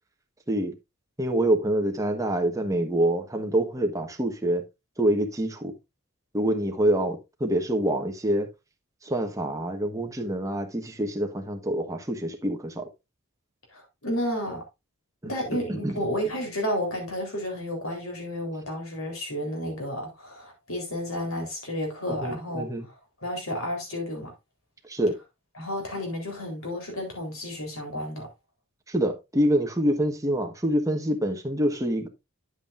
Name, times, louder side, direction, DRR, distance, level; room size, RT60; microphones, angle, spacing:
voice 1, 1.2-4.6 5.0-5.7 6.3-8.5 9.0-12.9 15.2-15.3 15.7-16.0 22.2-22.9 24.9-25.2 28.9-32.1, right 1 dB, 15° right, 1.3 m, -26 dB
voice 2, 13.7-14.6 15.3-22.7 23.2-24.3 25.6-28.3, equal, 70° left, 3.9 m, -31 dB
9.2 x 8.1 x 2.5 m
head